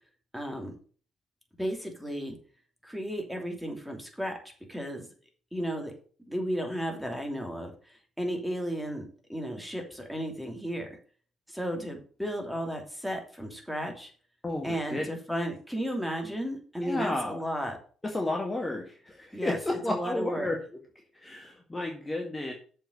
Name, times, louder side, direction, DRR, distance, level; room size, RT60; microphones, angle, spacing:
voice 1, 0.3-0.7 1.6-2.3 2.8-4.4 4.7-5.1 5.5-5.9 6.3-10.9 11.5-14.1 14.6-17.8 19.3-20.5, equal, ahead, 2 dB, 2.9 m, -34 dB
voice 2, 14.4-15.1 16.8-17.4 18.1-20.6 21.1-22.5, left 2 dB, 20° left, 1 dB, 1.9 m, -32 dB
6.9 x 5.5 x 6.8 m, 0.42 s
figure-of-eight pair, 50°, 0 cm